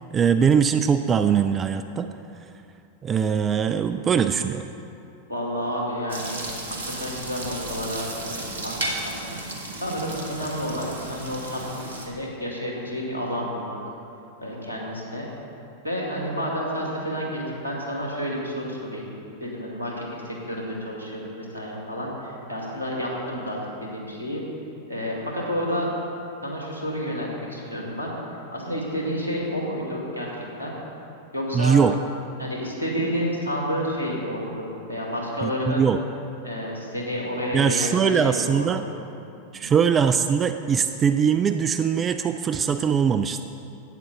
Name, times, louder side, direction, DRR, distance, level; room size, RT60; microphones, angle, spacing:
voice 1, 0.1-2.1 3.0-4.7 31.5-31.9 35.4-36.0 37.5-38.9 39.5-43.4, right 7 dB, 25° right, 9 dB, 0.3 m, -21 dB
voice 2, 5.3-6.4 6.8-9.4 9.8-13.8 14.4-15.3 15.8-19.1 19.4-24.4 24.9-25.9 26.4-28.2 28.5-30.8 31.3-31.8 32.4-35.9 36.4-38.7 39.6-39.7, equal, 85° right, -3 dB, 2.0 m, -30 dB
sound 1, 6.1-12.1, right 2 dB, 65° right, 1.3 m, -34 dB
11.5 x 8.8 x 3.9 m, 2.7 s
figure-of-eight pair, 90°, 0 cm